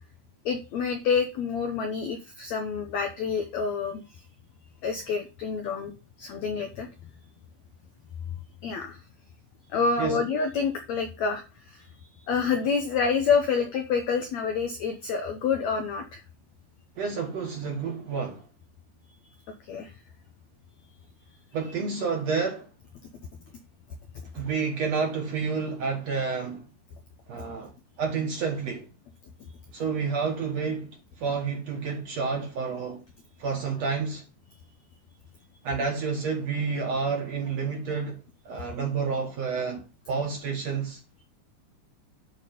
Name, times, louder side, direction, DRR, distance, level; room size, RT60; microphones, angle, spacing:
voice 1, 0.4-4.0 4.8-5.9 6.2-6.9 8.6-9.0 9.7-11.4 11.7-11.8 12.3-16.2 19.7-19.9, left 5 dB, 85° left, 1.5 m, -27 dB
voice 2, 17.0-18.4 21.5-22.7 24.3-26.6 27.3-27.7 28.0-28.9 29.7-30.9 31.2-33.0 33.4-34.2 35.6-41.0, right 5 dB, 60° right, 1.8 m, -29 dB
10.5 x 4.3 x 5.0 m
omnidirectional pair, 4.6 m